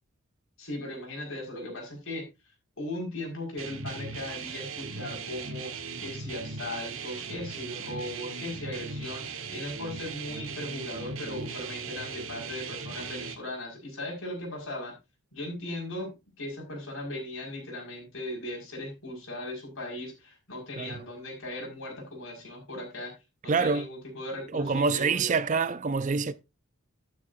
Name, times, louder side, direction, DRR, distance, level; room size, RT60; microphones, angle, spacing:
voice 1, 0.6-2.3 2.8-5.7 6.0-15.0 15.3-23.1 23.4-25.3, left 1 dB, 70° left, 5.4 m, -38 dB
sound 1, 3.6-13.4, right 5 dB, 70° right, 1.4 m, -38 dB
voice 2, 23.5-23.9 24.5-26.3, right 4 dB, 35° right, 0.5 m, -26 dB
11.5 x 9.9 x 2.6 m
head